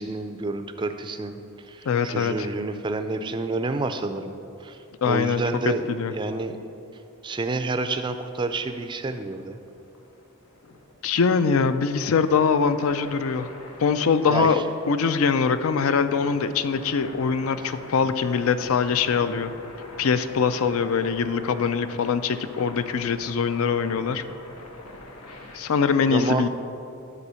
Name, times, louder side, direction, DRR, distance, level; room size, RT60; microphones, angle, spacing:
voice 1, 0.0-1.4 1.6-4.3 4.6-6.5 7.2-9.6 14.3-14.6 17.6-17.7 18.0-18.1 26.1-26.5, right 3 dB, 20° right, 8 dB, 0.3 m, -29 dB
voice 2, 1.9-2.5 5.0-5.4 5.9-6.1 11.0-13.5 13.8-19.5 20.0-24.2 25.5-26.5, left 5 dB, 70° left, 12 dB, 0.4 m, -23 dB
sound 1, 7.3-25.6, left 2 dB, 90° left, 1.1 m, -44 dB
9.9 x 4.1 x 6.8 m, 2.8 s
head